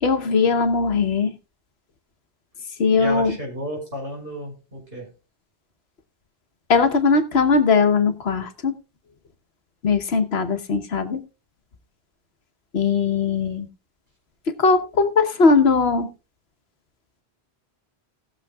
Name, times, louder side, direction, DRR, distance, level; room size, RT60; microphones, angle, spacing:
voice 1, 0.0-1.4 2.8-3.3 6.7-8.7 9.8-11.2 12.7-13.7 14.5-16.1, left 4 dB, 75° left, 1.3 m, -19 dB
voice 2, 2.9-5.1, left 1 dB, 65° right, 5.3 m, -32 dB
19.5 x 6.9 x 2.3 m
omnidirectional pair, 1.1 m